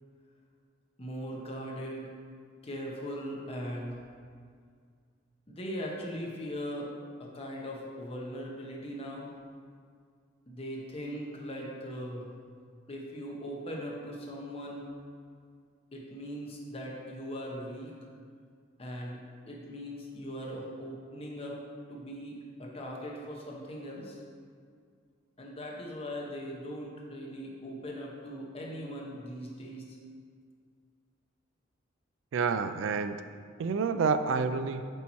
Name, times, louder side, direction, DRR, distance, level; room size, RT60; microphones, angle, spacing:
voice 1, 1.0-2.1 2.6-4.0 5.5-6.9 7.2-9.3 10.5-12.3 12.9-14.9 15.9-17.9 18.8-21.6 21.9-24.2 25.4-30.0, equal, 30° left, -2 dB, 0.9 m, -40 dB
voice 2, 32.3-33.2 33.6-34.9, right 5 dB, 75° right, 10 dB, 0.3 m, -28 dB
8.0 x 3.0 x 4.2 m, 2.1 s
head